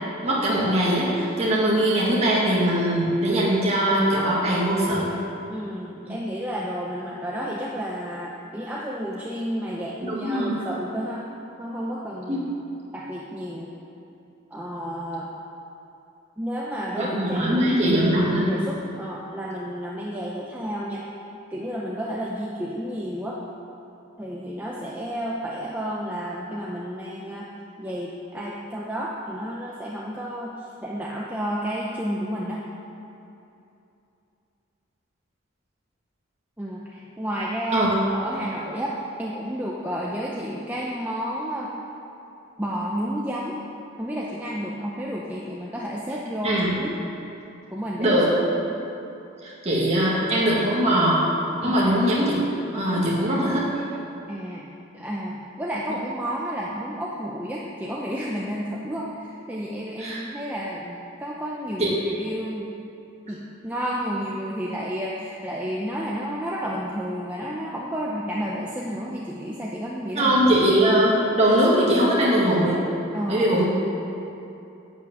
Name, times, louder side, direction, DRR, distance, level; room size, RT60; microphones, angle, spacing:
voice 1, 0.2-5.1 6.0-6.2 10.0-10.6 12.3-12.4 17.0-18.5 37.7-38.0 46.4-46.7 48.0-48.3 49.4-51.2 51.6-52.4 52.7-53.6 60.0-60.2 61.8-61.9 70.2-72.8 73.3-73.7, right 1 dB, 30° right, -6 dB, 1.9 m, -21 dB
voice 2, 5.5-11.3 11.6-12.5 12.9-13.7 14.5-15.3 16.4-21.1 21.5-23.4 24.2-27.5 27.8-32.6 36.6-37.9 38.1-41.7 42.6-43.6 44.0-46.9 47.7-48.2 48.5-48.6 51.6-51.7 54.3-54.7 54.9-62.7 63.3-70.4 73.1-73.5, equal, 10° right, -5 dB, 0.7 m, -31 dB
11.0 x 6.1 x 7.8 m, 2.8 s
head